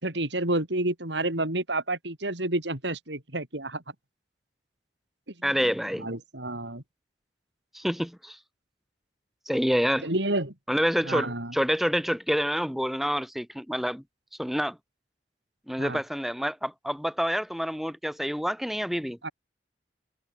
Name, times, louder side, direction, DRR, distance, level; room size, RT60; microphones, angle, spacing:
voice 1, 0.0-3.8 5.4-5.5 6.0-6.8 10.0-10.5 11.0-11.5 15.8-16.0 19.2-19.3, right 2 dB, 80° right, 5.2 m, -29 dB
voice 2, 5.4-6.1 7.7-8.4 9.5-10.1 10.7-14.0 14.4-14.8 15.7-19.2, equal, ahead, 3.6 m, -27 dB
head